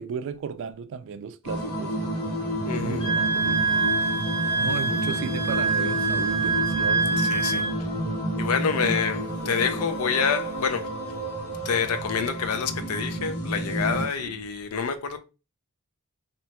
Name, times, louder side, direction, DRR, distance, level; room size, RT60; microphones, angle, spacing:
voice 1, 0.0-2.0 2.7-3.8 4.6-7.4 14.2-14.4, right 6 dB, 60° right, 0.3 m, -35 dB
sound 1, 1.4-14.1, right 1 dB, 90° left, 1.4 m, -30 dB
voice 2, 2.6-3.0 7.2-7.6 8.4-11.1 11.6-15.2, left 6 dB, 70° left, 0.5 m, -27 dB
Wind instrument woodwind instrument, 3.0-7.7, right 4 dB, 45° left, 1.1 m, -25 dB
2.8 x 2.2 x 2.8 m
head